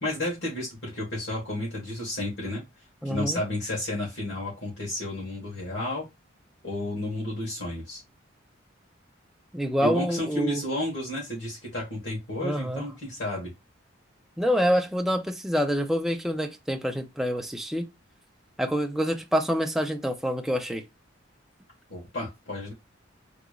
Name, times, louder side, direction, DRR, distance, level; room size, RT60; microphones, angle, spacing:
voice 1, 0.0-2.6 3.0-6.0 6.6-8.0 9.8-13.5 21.9-22.7, left 1 dB, 60° left, 1.4 m, -32 dB
voice 2, 3.0-3.4 9.5-10.6 12.4-12.8 14.4-17.9 18.6-20.8, equal, ahead, 0.5 m, -26 dB
4.8 x 2.9 x 2.4 m
head